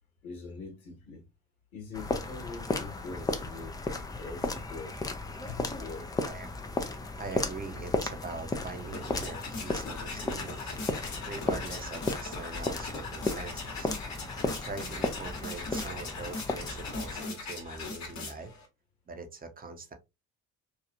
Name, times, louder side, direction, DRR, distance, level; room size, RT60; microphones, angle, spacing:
voice 1, 0.2-1.2 1.7-3.8 4.1-5.0 5.5-6.1, left 4 dB, 85° left, 1.0 m, -43 dB
sound 1, 1.9-17.2, left 3 dB, 10° left, 0.3 m, -35 dB
voice 2, 7.2-13.9 14.4-18.5 19.1-19.9, right 4 dB, 20° right, 0.6 m, -42 dB
sound 2, 8.6-18.7, left 3 dB, 40° left, 1.1 m, -40 dB
3.0 x 2.3 x 2.4 m
hypercardioid pair, 50°, 42 cm